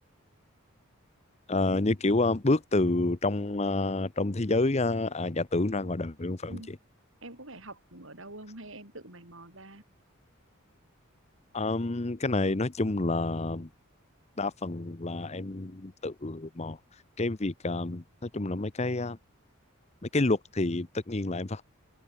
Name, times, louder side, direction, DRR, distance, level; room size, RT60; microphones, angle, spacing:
voice 1, 1.5-6.6 11.5-13.7 14.4-16.8 17.2-19.2 20.1-21.6, left 2 dB, 30° left, 0.8 m, -28 dB
voice 2, 7.2-9.8, right 2 dB, 60° right, 6.6 m, -45 dB
open air
head